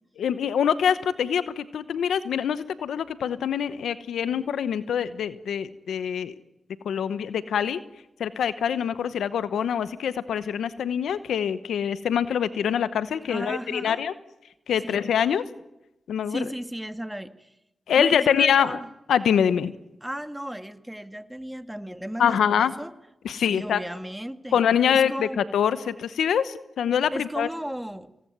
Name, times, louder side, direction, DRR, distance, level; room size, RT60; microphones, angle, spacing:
voice 1, 0.2-6.3 6.8-7.8 8.2-14.1 14.7-15.4 16.1-16.5 17.9-18.8 19.1-19.7 22.2-22.7 23.2-23.8 24.5-27.5, left 8 dB, 90° left, 14 dB, 0.9 m, -24 dB
voice 2, 13.3-14.0 14.8-15.0 16.3-17.5 18.0-18.9 20.0-22.9 23.3-24.6 24.9-25.4 27.1-28.1, equal, 5° right, 9 dB, 2.0 m, -35 dB
27.0 x 19.5 x 9.4 m, 0.96 s
cardioid pair, 45°, 0 cm